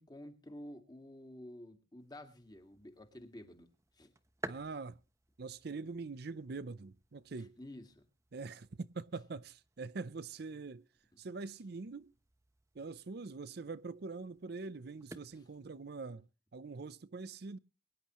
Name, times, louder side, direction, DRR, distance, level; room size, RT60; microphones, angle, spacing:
voice 1, 0.0-3.7 3.9-4.1 7.4-8.1 15.3-15.4, left 1 dB, 20° left, 2.0 m, -51 dB
sound 1, 2.0-16.1, right 2 dB, 15° right, 0.9 m, -55 dB
voice 2, 4.5-5.0 5.4-7.6 8.3-10.8 11.2-12.1 12.7-16.3 16.5-17.6, right 4 dB, 55° right, 0.5 m, -44 dB
23.0 x 10.5 x 3.0 m
head